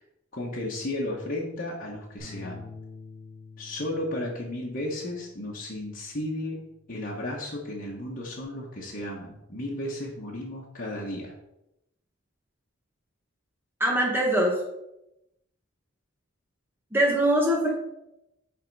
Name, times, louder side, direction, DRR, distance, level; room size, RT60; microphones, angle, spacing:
voice 1, 0.3-2.6 3.6-11.3, left 1 dB, 45° left, -4 dB, 1.2 m, -34 dB
sound 1, 2.2-8.4, left 4 dB, 10° left, 2.8 m, -49 dB
voice 2, 13.8-14.6 16.9-17.7, right 1 dB, 10° right, -2 dB, 1.0 m, -22 dB
9.4 x 3.5 x 4.7 m, 0.86 s
head